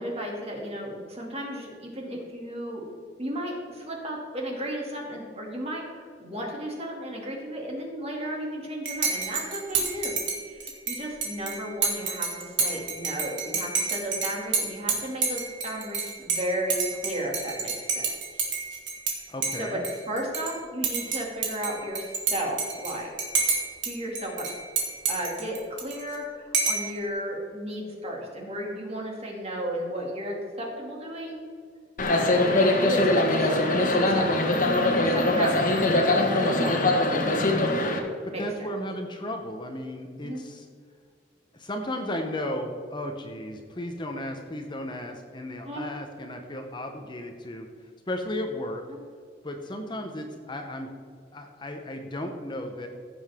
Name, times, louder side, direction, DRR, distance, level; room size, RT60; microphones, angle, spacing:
voice 1, 0.0-2.8 3.2-10.2 10.5-18.1 19.6-23.1 23.8-24.5 25.1-31.4 32.5-34.3 34.9-37.2 38.3-38.4 40.2-40.4 45.6-45.9 48.9-49.0, equal, 35° right, -1 dB, 2.5 m, -34 dB
Dishes pots and pans / Cutlery silverware / Chink clink, 8.9-19.2 19.4-20.5 20.8-23.9 24.2-26.2 26.5-26.9, right 5 dB, 90° right, 2.2 m, -29 dB
voice 2, 19.3-19.8 32.2-32.6 38.4-40.7 41.5-47.7 48.1-48.8 49.4-50.9 51.3-52.9, left 1 dB, 25° left, 4 dB, 0.8 m, -34 dB
sound 1, 32.0-38.0, left 2 dB, 45° left, 1.4 m, -22 dB
15.5 x 7.1 x 3.6 m, 2.1 s
head